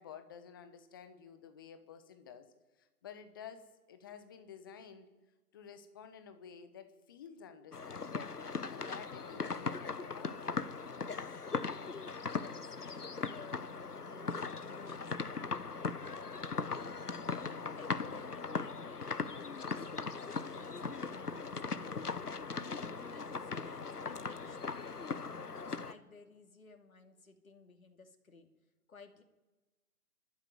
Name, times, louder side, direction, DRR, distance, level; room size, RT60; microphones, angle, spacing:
voice 1, 0.0-2.5 2.8-5.1 5.5-10.7, left 7 dB, 15° left, 10 dB, 0.9 m, -52 dB
sound 1, 7.7-25.9, left 4 dB, 80° left, 1.3 m, -39 dB
voice 2, 12.2-15.2 16.1-16.2 16.4-17.0 17.3-28.5 28.9-29.2, left 4 dB, 60° left, 5 dB, 2.8 m, -56 dB
26.0 x 12.0 x 9.6 m, 1.2 s
figure-of-eight pair, 145°, 46 cm